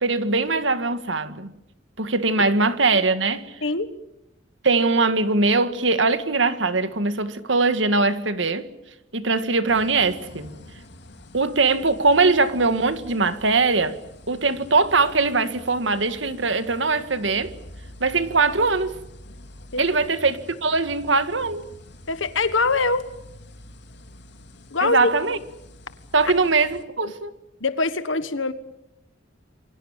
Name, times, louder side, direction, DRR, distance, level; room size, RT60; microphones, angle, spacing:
voice 1, 0.0-1.5 2.0-3.4 4.6-8.7 9.1-10.5 11.3-14.0 14.3-17.5 18.0-19.0 19.8-21.6 24.8-25.4 26.1-27.3, right 3 dB, 70° right, 1.9 m, -21 dB
voice 2, 3.6-3.9 19.7-19.8 22.1-23.0 24.7-25.1 27.6-28.5, left 3 dB, 90° left, 1.5 m, -23 dB
sound 1, 9.7-26.8, left 1 dB, 65° left, 2.6 m, -46 dB
28.0 x 23.5 x 7.5 m
head